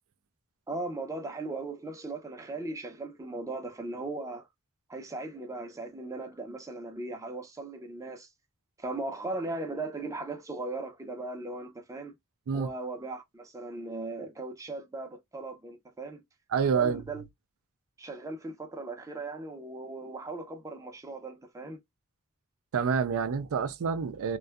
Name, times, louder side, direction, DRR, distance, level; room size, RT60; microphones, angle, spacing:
voice 1, 0.7-4.5 4.9-8.3 8.8-12.1 12.5-16.2 16.7-17.2 18.0-21.8, right 2 dB, 15° right, 0.6 m, -38 dB
voice 2, 16.5-17.0 22.7-24.4, right 6 dB, 65° right, 0.4 m, -27 dB
2.6 x 2.3 x 2.2 m
head